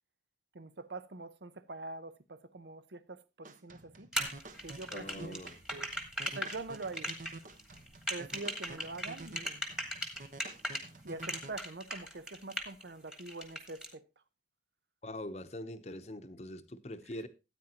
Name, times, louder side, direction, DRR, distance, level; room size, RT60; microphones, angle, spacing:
voice 1, 0.5-4.1 4.6-5.3 5.7-5.9 6.3-7.1 8.1-9.6 11.0-14.0, right 3 dB, 70° right, 0.8 m, -44 dB
sound 1, 3.4-11.5, right 2 dB, 45° right, 1.0 m, -50 dB
sound 2, 4.1-10.8 11.2-12.8 13.1-13.9, equal, 5° right, 1.4 m, -37 dB
voice 2, 4.9-5.6 15.0-17.3, left 1 dB, 35° left, 0.8 m, -43 dB
13.5 x 9.0 x 2.9 m
head